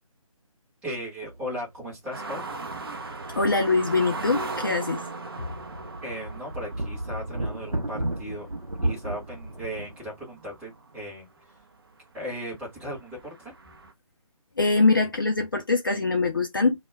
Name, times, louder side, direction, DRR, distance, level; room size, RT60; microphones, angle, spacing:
voice 1, 0.8-2.4 6.0-8.5 8.8-11.3 12.1-13.5, equal, 5° right, 0.8 m, -36 dB
sound 1, 1.3-1.4 1.8-1.9 2.8-4.2 4.6-4.7 5.2-10.0, right 1 dB, 90° right, 0.7 m, -34 dB
sound 2, 2.1-11.2 11.6-11.7 12.2-13.9, right 3 dB, 40° right, 0.5 m, -38 dB
voice 2, 3.3-5.0 5.4-5.5 14.6-16.8, left 3 dB, 35° left, 0.4 m, -23 dB
2.2 x 2.2 x 3.1 m
figure-of-eight pair, 150°, 18 cm